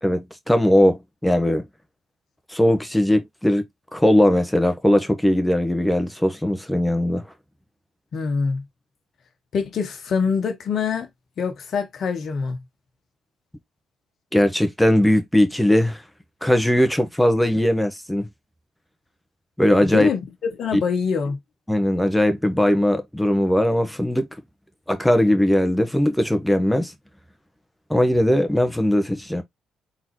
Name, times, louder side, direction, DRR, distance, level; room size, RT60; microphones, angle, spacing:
voice 1, 0.0-1.6 2.5-3.6 3.9-7.2 14.3-16.0 16.4-18.3 19.6-20.1 20.7-20.8 21.7-24.3 24.9-26.9 27.9-29.4, left 1 dB, 5° left, 1.3 m, -19 dB
voice 2, 8.1-8.6 9.5-11.1 11.4-12.6 19.8-21.4, left 5 dB, 60° left, 1.1 m, -25 dB
3.9 x 3.9 x 3.1 m
hypercardioid pair, 50°, 0 cm